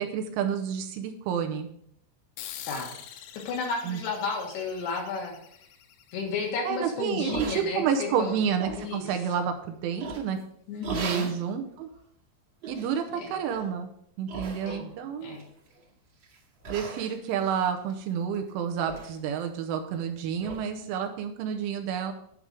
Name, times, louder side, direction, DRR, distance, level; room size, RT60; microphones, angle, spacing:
voice 1, 0.0-1.7 3.8-4.0 6.6-10.4 10.9-11.9 12.7-13.9 14.2-15.4 16.7-22.1, right 7 dB, 80° right, 5 dB, 3.1 m, -29 dB
sound 1, 2.4-7.3, left 10 dB, 85° left, 3.2 m, -46 dB
voice 2, 3.4-5.3 6.1-8.4 8.7-9.5 10.7-11.3 13.1-13.3 14.7-14.9 15.2-15.4, left 4 dB, 65° left, 1 dB, 3.0 m, -33 dB
sound 2, 7.3-8.0 8.4-8.9 10.0-10.4 10.8-11.4 11.9-12.0 12.6-13.0 13.4-13.7 14.3-15.0 15.3-15.8 16.2-16.4 16.6-18.5 18.8-19.1 19.4-19.5 19.9-20.0 20.4-20.6, right 3 dB, 50° right, 1.5 m, -38 dB
11.0 x 5.3 x 4.8 m, 0.70 s
omnidirectional pair, 5.8 m